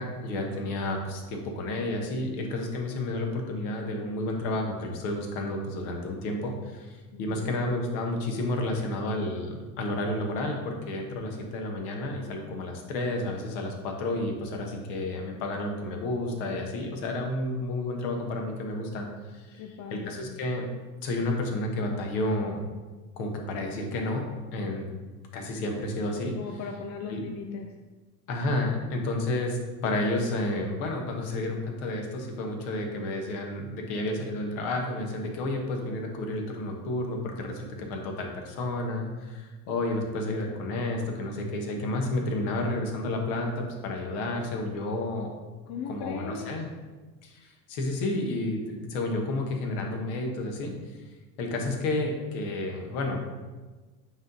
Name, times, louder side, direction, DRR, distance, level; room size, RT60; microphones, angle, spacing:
voice 1, 0.0-19.1 19.3-19.6 19.9-20.6 21.0-22.7 23.2-24.3 24.5-24.9 25.3-26.3 27.1-27.2 28.3-45.3 45.9-46.7 47.2-50.8 51.4-53.2, left 2 dB, 55° left, 2 dB, 1.5 m, -31 dB
voice 2, 7.1-7.9 19.6-20.4 26.3-27.8 45.7-46.6, left 5 dB, 40° left, 3 dB, 0.7 m, -38 dB
8.8 x 3.9 x 4.0 m, 1.3 s
figure-of-eight pair, 70°, 46 cm